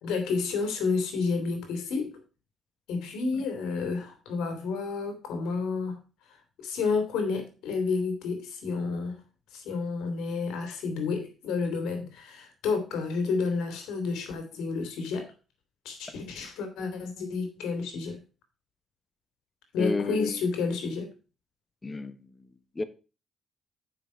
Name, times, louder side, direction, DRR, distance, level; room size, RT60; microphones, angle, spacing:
voice 1, 0.0-2.2 2.9-6.0 6.6-9.2 9.5-15.3 15.8-18.2 19.7-21.1, left 4 dB, 90° left, 2.9 m, -30 dB
voice 2, 19.8-20.4 21.8-22.3 22.7-22.8, left 3 dB, 25° left, 1.1 m, -31 dB
7.6 x 6.0 x 5.7 m
cardioid pair, 90°, 0 cm